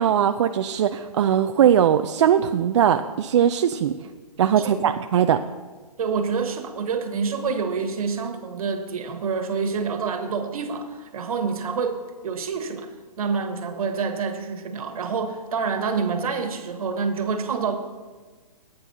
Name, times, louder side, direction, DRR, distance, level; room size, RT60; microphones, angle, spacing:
voice 1, 0.0-3.9 4.4-5.4, right 9 dB, 45° right, 7 dB, 0.4 m, -20 dB
voice 2, 4.6-5.0 6.0-17.8, right 5 dB, 60° right, 7 dB, 1.5 m, -27 dB
15.5 x 8.9 x 2.8 m, 1.3 s
hypercardioid pair, 150°, 20 cm